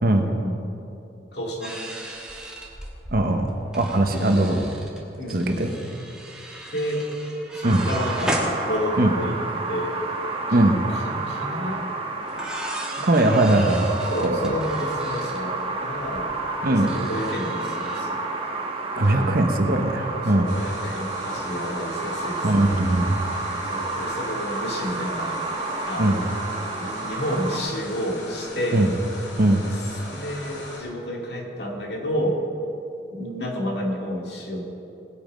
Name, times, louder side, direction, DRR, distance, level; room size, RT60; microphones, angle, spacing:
voice 1, 0.2-0.6 1.3-1.8 4.2-4.4 5.2-5.5 6.7-7.0 7.5-9.4 9.7-10.0 10.9-11.8 13.0-13.1 14.1-16.3 16.7-18.2 19.0-19.3 20.3-22.6 23.7-26.2 26.8-28.9 29.7-29.8 30.1-32.4 33.1-34.6, equal, 70° left, 0 dB, 2.2 m, -30 dB
sound 1, 1.6-9.2 9.5-9.6 9.8-10.2 11.6-11.7 12.2-18.0, right 1 dB, 5° right, 1.5 m, -36 dB
voice 2, 3.1-4.7 5.3-5.7 7.6-7.8 9.0-9.1 10.5-10.8 13.0-14.0 14.2-14.5 16.6-16.9 18.9-20.5 22.4-23.2 26.0-26.2 28.7-28.9 29.4-29.6, right 1 dB, 55° right, 5 dB, 1.1 m, -20 dB
sound 2, 7.6-27.6, right 3 dB, 30° right, 1.2 m, -30 dB
sound 3, 20.5-30.8, left 1 dB, 85° left, 2.6 m, -39 dB
18.5 x 8.6 x 5.3 m, 2.9 s
head